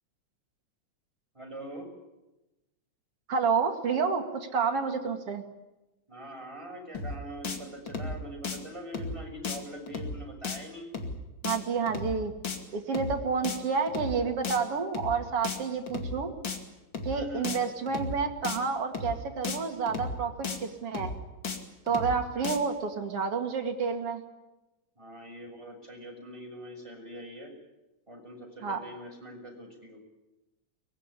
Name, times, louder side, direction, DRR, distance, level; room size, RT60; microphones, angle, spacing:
voice 1, 1.3-1.9 6.1-10.9 17.1-17.5 24.9-27.5 28.1-30.0, equal, 10° right, 0 dB, 6.3 m, -43 dB
voice 2, 3.3-5.4 11.4-12.3 12.7-16.3 17.0-21.1 21.9-24.2 28.6-28.8, right 5 dB, 50° right, 5 dB, 3.0 m, -29 dB
sound 1, 6.9-7.2 7.4-7.6 7.9-8.2 8.4-8.6 8.9-9.2 9.4-9.6 9.9-10.2 10.4-10.6 10.9-11.2 11.4-11.6 11.9-12.2 12.4-12.6 12.9-13.2 13.4-13.6 13.9-14.2 14.4-14.6 14.9-15.2 15.4-15.6 15.9-16.2 16.4-16.6 16.9-17.2 17.4-17.6 17.9-18.2 18.4-18.6 18.9-19.2 19.4-19.6 19.9-20.2 20.4-20.6 20.9-21.2 21.4-21.6 21.9-22.2 22.4-22.6, left 4 dB, 40° left, 2.9 m, -34 dB
24.0 x 20.0 x 9.9 m, 1.0 s
omnidirectional pair, 3.4 m